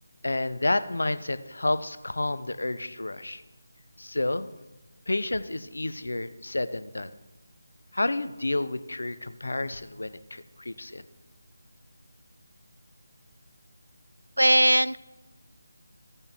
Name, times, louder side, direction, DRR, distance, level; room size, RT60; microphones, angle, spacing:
voice 1, 0.2-3.4 4.0-4.5 5.1-7.1 7.9-11.0, left 2 dB, 60° left, 13 dB, 0.6 m, -30 dB
voice 2, 14.4-15.0, equal, 80° right, 18 dB, 0.4 m, -19 dB
16.5 x 6.6 x 2.9 m, 1.1 s
figure-of-eight pair, 160°, 0 cm